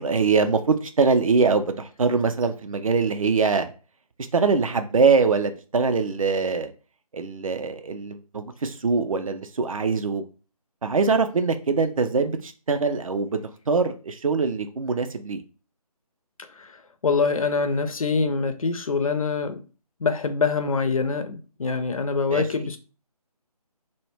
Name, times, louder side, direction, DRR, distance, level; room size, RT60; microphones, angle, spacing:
voice 1, 0.0-3.7 4.3-6.7 7.1-10.2 10.8-13.4 13.7-15.4 22.3-22.7, right 4 dB, 60° right, 0.4 m, -23 dB
voice 2, 17.0-19.6 20.0-22.8, left 4 dB, 60° left, 0.4 m, -24 dB
2.1 x 2.0 x 3.3 m
figure-of-eight pair, 155°, 20 cm